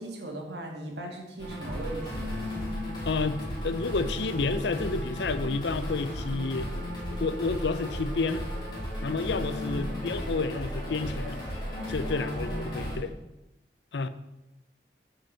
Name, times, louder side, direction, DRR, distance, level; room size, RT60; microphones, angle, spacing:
voice 1, 0.0-2.4 9.6-10.1 12.1-13.2, right 1 dB, 75° right, 2 dB, 1.7 m, -38 dB
sound 1, 1.4-13.0, equal, 25° left, 2.4 m, -35 dB
voice 2, 3.0-6.7 7.2-8.5 9.0-11.4 11.9-13.1 13.9-14.1, left 3 dB, 75° left, 12 dB, 0.6 m, -30 dB
7.7 x 4.8 x 6.2 m, 0.94 s
head